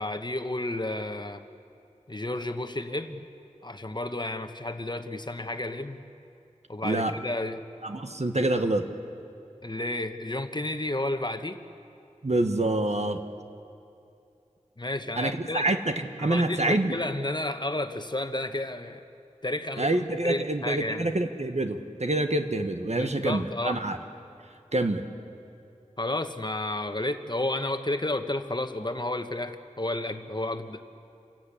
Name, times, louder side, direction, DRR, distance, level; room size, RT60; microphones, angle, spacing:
voice 1, 0.0-1.4 2.1-3.3 3.6-6.0 6.7-7.6 9.6-11.6 14.8-15.7 16.2-19.0 19.4-20.0 20.2-21.1 22.9-23.8 26.0-30.8, left 1 dB, 35° left, 8 dB, 1.1 m, -31 dB
voice 2, 7.8-8.9 12.2-13.2 15.2-17.0 19.8-24.0 24.7-25.0, right 2 dB, 60° right, 6 dB, 1.4 m, -27 dB
27.5 x 16.0 x 8.4 m, 2.6 s
wide cardioid pair, 45°, 13 cm